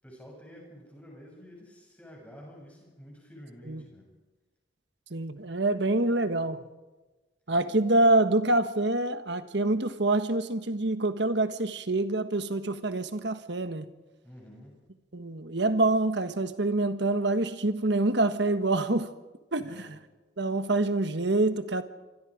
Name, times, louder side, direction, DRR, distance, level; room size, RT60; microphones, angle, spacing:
voice 1, 0.0-4.1 14.2-14.8 19.6-19.9, equal, 5° left, 7.5 m, -49 dB
voice 2, 5.1-6.6 7.5-13.9 15.1-19.1 19.5-19.8 20.4-21.8, right 2 dB, 60° right, 1.3 m, -26 dB
27.5 x 25.0 x 5.0 m
head